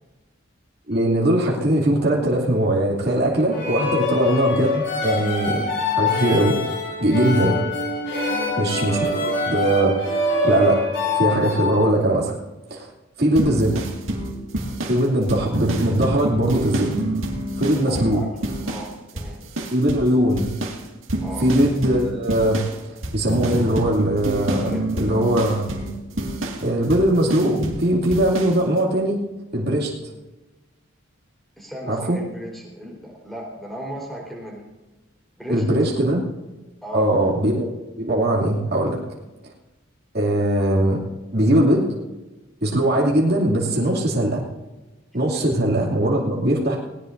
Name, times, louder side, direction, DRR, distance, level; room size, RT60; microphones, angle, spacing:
voice 1, 0.9-6.6 7.0-7.6 8.6-10.0 10.4-10.8 11.1-12.3 12.7-12.9 13.2-13.8 14.9-17.0 17.6-18.2 19.7-20.5 21.4-22.6 23.1-25.7 26.6-29.2 29.5-30.1 31.9-32.2 35.5-36.2 36.9-37.7 38.0-39.0 40.1-41.0 41.3-41.9 42.6-44.4 45.1-46.8, right 1 dB, 50° right, -4 dB, 2.5 m, -20 dB
sound 1, 3.5-11.9, left 2 dB, 60° left, 5.2 m, -24 dB
voice 2, 8.2-8.6 17.9-18.3 18.6-19.4 21.2-21.5 24.7-24.8 31.6-34.6 35.4-35.6 36.8-37.1 45.3-45.4, right 1 dB, ahead, -2 dB, 4.0 m, -36 dB
sound 2, 13.4-18.9 19.2-20.1 20.4-27.8 28.1-28.6, right 1 dB, 80° right, 2.0 m, -28 dB
18.5 x 18.5 x 2.6 m, 1.1 s
head